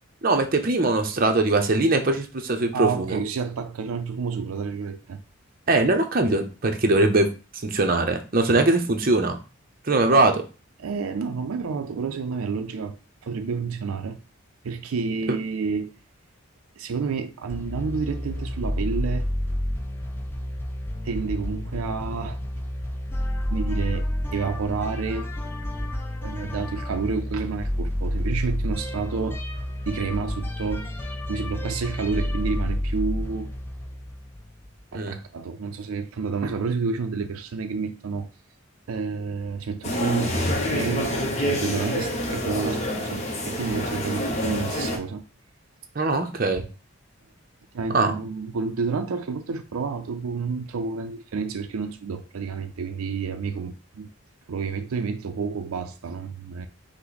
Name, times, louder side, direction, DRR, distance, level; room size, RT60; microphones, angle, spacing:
voice 1, 0.2-3.2 5.7-7.3 7.6-9.4 9.9-10.3 15.3-15.4 34.9-35.1 45.9-46.7 47.9-48.1, right 2 dB, 40° right, 0.6 m, -21 dB
voice 2, 2.7-5.2 10.0-10.3 10.8-13.0 13.2-14.2 14.6-15.9 16.8-19.3 21.0-22.4 23.5-24.1 24.3-25.3 26.2-29.4 29.9-33.5 34.9-38.3 38.9-45.2 47.7-54.1 54.5-56.7, right 5 dB, 85° right, 0.4 m, -30 dB
sound 1, 17.5-34.8, left 1 dB, 10° left, 0.4 m, -30 dB
sound 2, 39.8-45.0, left 1 dB, 30° left, 0.7 m, -27 dB
5.7 x 2.1 x 3.9 m
head